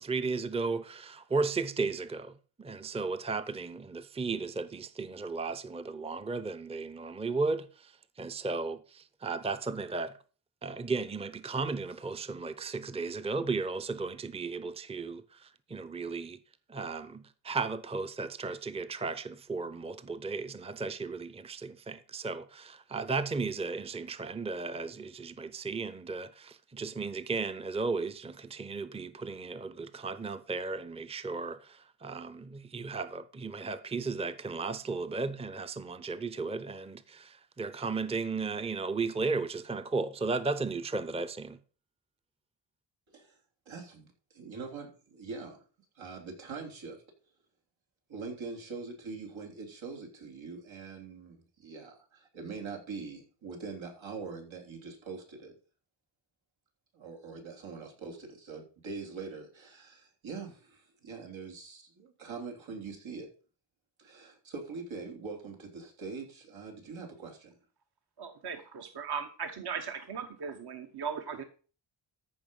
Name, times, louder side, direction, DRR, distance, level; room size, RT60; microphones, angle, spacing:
voice 1, 0.0-2.3 2.6-7.9 8.2-10.1 10.6-16.4 16.7-41.6, right 4 dB, 15° right, 0.6 m, -35 dB
voice 2, 43.6-44.1 44.3-45.6 45.9-47.0 48.1-55.5 56.9-63.3 64.0-67.5, right 4 dB, 90° right, 3.4 m, -43 dB
voice 3, 68.2-71.4, right 6 dB, 60° right, 1.2 m, -38 dB
14.0 x 5.7 x 5.4 m
wide cardioid pair, 125°, 45 cm